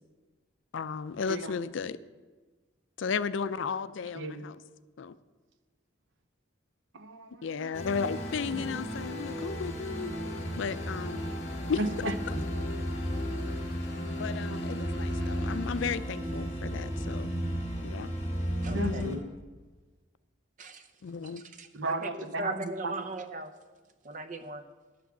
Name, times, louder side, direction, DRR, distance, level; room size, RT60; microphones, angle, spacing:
voice 1, 0.7-2.0 3.0-4.6 5.0-5.1 7.4-10.1 10.6-11.2 11.7-11.8 14.2-17.3 17.8-18.1 18.7-19.2 21.0-21.4, left 5 dB, 75° left, 15 dB, 0.4 m, -34 dB
voice 2, 4.1-4.5 6.9-7.8 8.5-8.8 11.8-12.4 15.2-15.4 18.7-19.3 21.7-22.9, right 2 dB, 75° right, 9 dB, 0.8 m, -35 dB
sound 1, 7.7-19.2, equal, 35° left, 1.6 m, -34 dB
sound 2, 8.0-16.0, left 4 dB, 55° left, 0.8 m, -51 dB
voice 3, 18.6-19.1 20.6-20.9 21.4-23.5 24.0-24.6, right 2 dB, 40° right, 10 dB, 0.6 m, -38 dB
9.8 x 6.0 x 7.3 m, 1.3 s
head